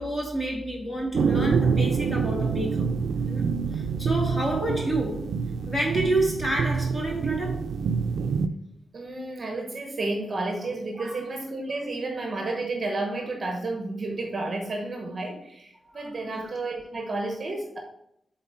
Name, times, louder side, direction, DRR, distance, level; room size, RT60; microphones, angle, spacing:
voice 1, 0.0-2.9 3.3-3.4 3.7-5.3 5.7-7.6 11.0-11.2 15.9-16.5, right 1 dB, 10° left, -2 dB, 1.8 m, -29 dB
sound 1, 1.1-8.5, right 5 dB, 75° right, 0.4 m, -26 dB
voice 2, 8.9-17.8, right 2 dB, 35° right, 2 dB, 1.0 m, -31 dB
7.7 x 3.9 x 4.3 m, 0.77 s
wide cardioid pair, 165°, 0 cm